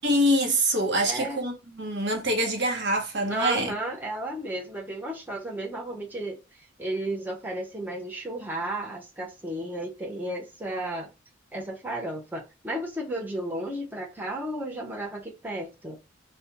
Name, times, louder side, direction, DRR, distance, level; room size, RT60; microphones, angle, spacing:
voice 1, 0.0-3.7, right 1 dB, 60° right, 0.8 m, -25 dB
voice 2, 1.0-1.4 3.3-6.4 6.8-11.1 11.5-16.0, right 1 dB, 10° right, 0.5 m, -33 dB
2.4 x 2.1 x 2.7 m
head